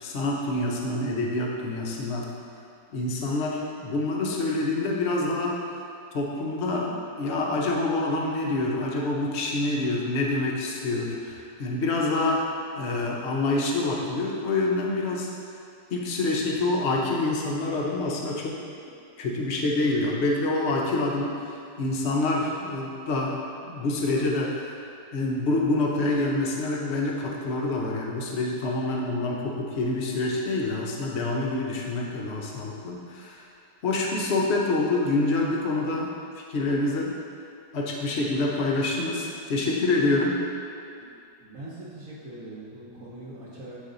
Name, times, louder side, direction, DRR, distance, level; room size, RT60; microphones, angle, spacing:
voice 1, 0.0-2.3 2.9-5.6 6.1-12.4 12.8-15.3 15.9-18.6 19.2-23.4 23.6-24.8 25.1-33.5 33.8-36.1 36.3-37.1 37.7-40.4, left 2 dB, 60° left, -2 dB, 0.7 m, -26 dB
voice 2, 41.4-43.8, right 1 dB, 55° right, -8 dB, 1.1 m, -41 dB
8.2 x 3.1 x 3.8 m, 2.5 s
omnidirectional pair, 2.0 m